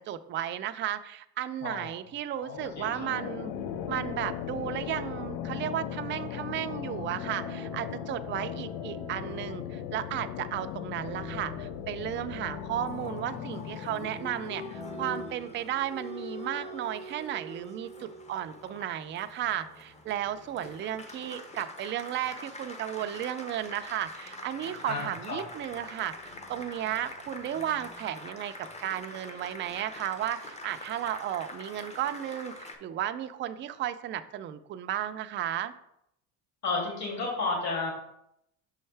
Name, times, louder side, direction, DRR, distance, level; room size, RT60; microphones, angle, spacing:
voice 1, 0.1-3.5 3.9-35.7, right 11 dB, 30° right, 9 dB, 0.4 m, -34 dB
voice 2, 2.4-3.1 24.8-25.4 36.6-37.9, left 3 dB, 45° left, -2 dB, 2.6 m, -32 dB
sound 1, 2.6-15.7, left 12 dB, 70° left, 0.5 m, -39 dB
sound 2, 3.5-15.3, left 3 dB, 90° left, 1.7 m, -44 dB
Applause, 12.8-32.8, left 2 dB, 15° left, 0.8 m, -44 dB
6.2 x 5.5 x 3.3 m, 0.79 s
cardioid pair, 120°, 38 cm